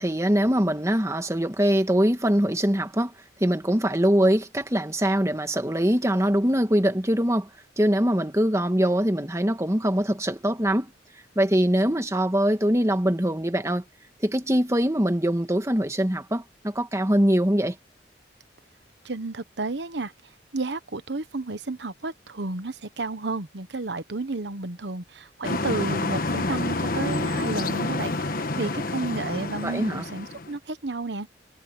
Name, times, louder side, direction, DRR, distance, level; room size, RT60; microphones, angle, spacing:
voice 1, 0.0-3.1 3.4-7.5 7.8-10.9 11.3-13.8 14.2-17.7 29.6-30.0, equal, 15° right, 1.7 m, -23 dB
voice 2, 19.0-20.1 20.5-28.2 28.6-31.3, right 3 dB, 80° right, 1.1 m, -32 dB
sound 1, 25.4-30.6, left 2 dB, 55° left, 1.3 m, -28 dB
head